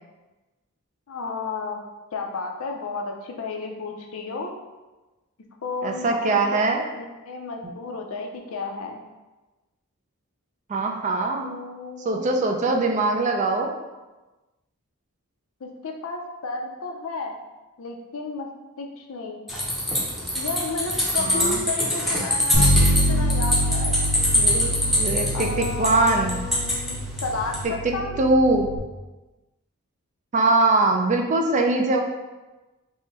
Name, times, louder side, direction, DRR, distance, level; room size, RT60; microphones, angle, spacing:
voice 1, 1.1-1.8 2.1-4.5 5.6-9.0 11.4-12.3 15.6-17.3 17.8-18.5 18.8-19.4 20.3-24.3 25.3-28.1, left 3 dB, 70° left, 2 dB, 0.5 m, -33 dB
voice 2, 5.8-6.8 7.6-7.7 10.7-11.5 12.0-13.7 21.2-21.6 24.3-26.4 27.8-28.7 30.3-32.0, right 2 dB, 35° right, 3 dB, 0.4 m, -22 dB
sound 1, 19.5-27.6, left 1 dB, ahead, 0.8 m, -24 dB
Bass guitar, 22.5-28.8, equal, 65° right, 0.8 m, -26 dB
3.7 x 2.1 x 3.9 m, 1.1 s
head